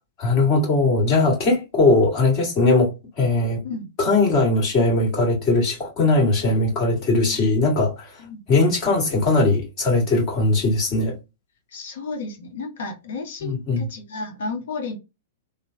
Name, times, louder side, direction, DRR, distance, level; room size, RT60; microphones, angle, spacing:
voice 1, 0.2-3.6 4.0-8.1 8.5-11.1 13.4-13.9, left 2 dB, 35° left, 1.8 m, -20 dB
voice 2, 11.7-14.9, left 3 dB, 55° left, 0.9 m, -32 dB
3.0 x 2.1 x 2.7 m
figure-of-eight pair, 105°, 0 cm